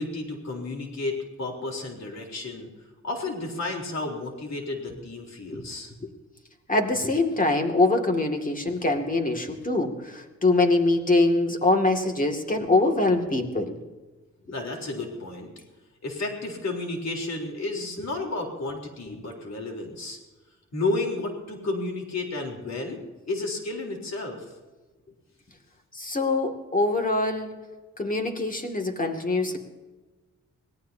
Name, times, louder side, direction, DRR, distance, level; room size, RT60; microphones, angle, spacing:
voice 1, 0.0-2.7 3.0-5.9 14.5-15.5 16.0-20.2 20.7-24.5, left 2 dB, 65° left, 1 dB, 3.8 m, -32 dB
voice 2, 6.7-13.8 25.9-27.5 28.0-29.6, left 2 dB, 30° left, 4 dB, 2.4 m, -24 dB
25.0 x 18.0 x 2.8 m, 1.2 s
cardioid pair, 80°, 29 cm